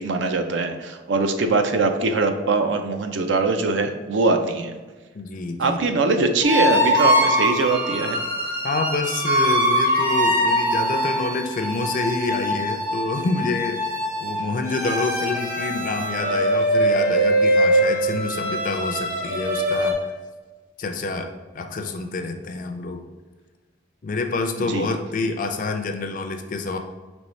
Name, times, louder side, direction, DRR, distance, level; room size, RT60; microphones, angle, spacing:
voice 1, 0.0-4.7 5.6-8.2 24.6-24.9, right 3 dB, 70° right, 6 dB, 0.5 m, -22 dB
voice 2, 5.1-5.8 8.6-13.9 14.2-20.0 20.8-23.0 24.0-26.8, left 3 dB, 45° left, 5 dB, 0.4 m, -27 dB
sound 1, 6.4-19.9, equal, 45° right, 1.0 m, -22 dB
5.3 x 3.0 x 3.1 m, 1.4 s
head